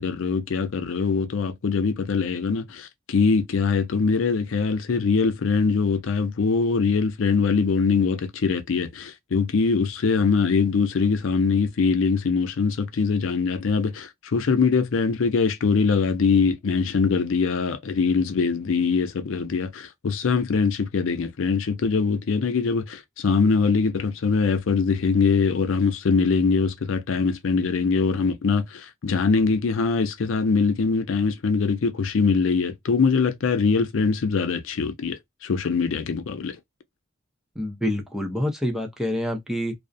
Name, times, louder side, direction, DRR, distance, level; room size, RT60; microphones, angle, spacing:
voice 1, 0.0-36.6, left 4 dB, 75° left, 0.5 m, -23 dB
voice 2, 37.6-39.7, left 1 dB, 5° right, 0.6 m, -27 dB
2.4 x 2.1 x 2.5 m
head